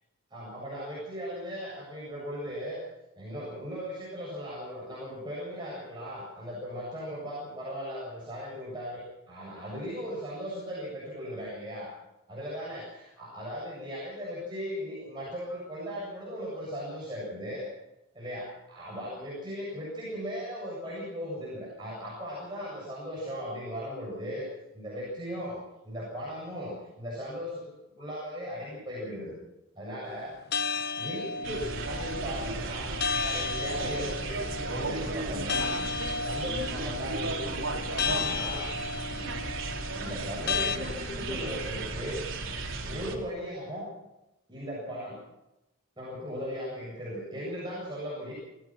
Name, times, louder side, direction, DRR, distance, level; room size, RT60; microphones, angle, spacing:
voice 1, 0.3-2.9 3.2-11.9 12.3-17.7 18.1-24.5 24.7-29.3 29.7-30.3 31.0-32.9 33.2-34.4 34.7-35.7 36.2-37.6 38.0-38.6 39.9-42.2 42.8-43.9 44.5-45.2 46.0-48.3, equal, 20° right, -6 dB, 7.6 m, -37 dB
sound 1, 30.5-40.8, left 4 dB, 50° left, 0.8 m, -34 dB
sound 2, 31.4-43.1, right 2 dB, 70° right, 3.7 m, -35 dB
27.0 x 16.5 x 6.2 m, 0.93 s
head